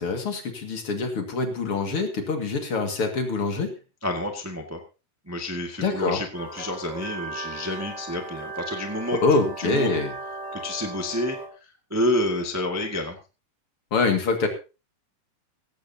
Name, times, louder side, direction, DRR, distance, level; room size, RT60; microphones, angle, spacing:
voice 1, 0.0-3.7 5.8-6.2 9.2-10.1 13.9-14.5, left 3 dB, 45° left, 4 dB, 2.7 m, -25 dB
voice 2, 4.0-4.8 5.3-9.2 9.6-9.9 10.5-11.4 11.9-13.2, left 1 dB, 10° right, 3 dB, 0.8 m, -29 dB
sound 1, 6.3-11.5, right 3 dB, 30° right, 4.5 m, -37 dB
17.0 x 15.5 x 2.9 m, 0.31 s
omnidirectional pair, 3.9 m